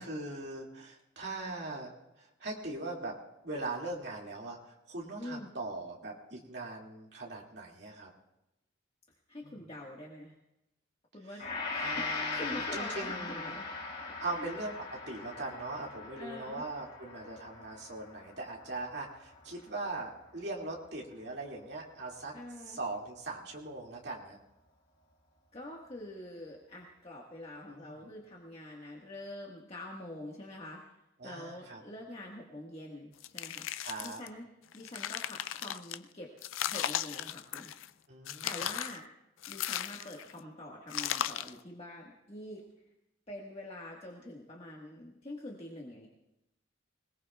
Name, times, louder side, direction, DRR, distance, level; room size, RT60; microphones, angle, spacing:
voice 1, 0.0-3.1 3.4-8.1 9.4-9.6 11.3-11.4 11.8-13.6 14.2-22.3 22.6-24.4 27.7-28.0 31.2-31.8 33.8-34.2 38.1-38.6, right 2 dB, 60° right, -2 dB, 2.4 m, -40 dB
voice 2, 5.2-5.5 9.3-10.3 11.1-11.4 11.7-13.7 14.2-14.5 16.2-16.6 22.3-22.8 25.5-30.8 31.2-33.7 34.0-34.5 34.7-36.3 36.7-37.7 38.4-39.0 39.5-42.6 43.3-46.1, left 1 dB, 30° left, -3 dB, 1.6 m, -45 dB
Gong, 11.4-19.8 20.2-20.3, left 4 dB, 50° left, 2.8 m, -40 dB
sound 1, 33.2-34.3 34.7-36.0 36.4-37.9 38.3-39.0 39.4-40.3 40.9-41.6, left 11 dB, 90° left, 0.4 m, -36 dB
25.0 x 18.5 x 2.4 m, 0.89 s
head